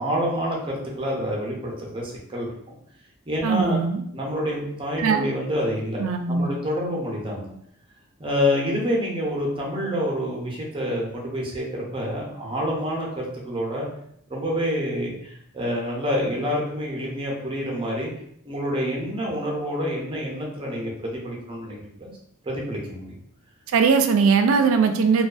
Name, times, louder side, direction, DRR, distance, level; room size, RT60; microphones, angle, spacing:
voice 1, 0.0-2.5 3.3-3.8 4.1-7.5 8.2-13.9 14.3-18.1 18.4-22.1 22.4-23.2, equal, 25° right, -2 dB, 0.6 m, -27 dB
voice 2, 3.4-4.0 5.0-5.3 6.0-6.5 23.7-25.3, right 5 dB, 70° right, 6 dB, 0.3 m, -20 dB
2.4 x 2.2 x 2.4 m, 0.71 s
head